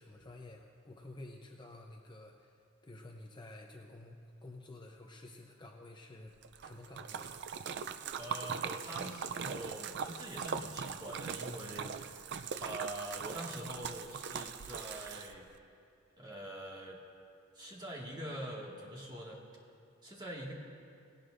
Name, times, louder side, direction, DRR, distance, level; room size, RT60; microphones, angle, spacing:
voice 1, 0.0-4.2 4.4-6.3 6.6-7.4, left 2 dB, 20° left, 2 dB, 0.7 m, -51 dB
Splash splatter, 6.4-15.5, right 6 dB, 55° right, 0.5 m, -41 dB
voice 2, 8.2-12.2 12.6-15.5 16.2-17.0 17.5-19.4 20.0-20.5, right 1 dB, 20° right, -3 dB, 1.9 m, -44 dB
19.0 x 17.5 x 2.6 m, 2.4 s
head